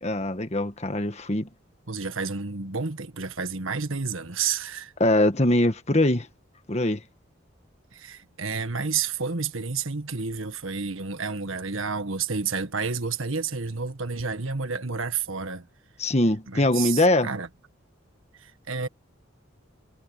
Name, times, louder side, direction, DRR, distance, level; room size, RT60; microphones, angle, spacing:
voice 1, 0.0-1.5 5.0-6.3 6.7-7.0 16.0-17.3, left 1 dB, 35° left, 1.5 m, -22 dB
voice 2, 1.9-4.9 7.9-15.7 16.5-17.5 18.4-18.9, right 5 dB, 85° right, 1.7 m, -30 dB
head